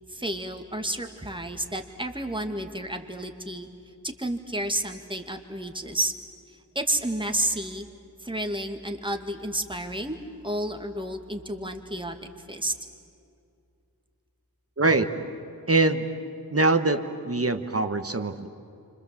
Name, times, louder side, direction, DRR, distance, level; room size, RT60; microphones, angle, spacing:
voice 1, 0.1-3.7 4.0-6.1 6.8-7.9 8.2-10.2 10.4-12.2 12.5-12.7, right 1 dB, 10° right, 4 dB, 2.1 m, -31 dB
voice 2, 14.8-15.1 15.7-16.0 16.5-18.5, right 3 dB, 35° right, 8 dB, 1.5 m, -23 dB
29.5 x 25.5 x 7.6 m, 2.6 s
wide cardioid pair, 65°, 39 cm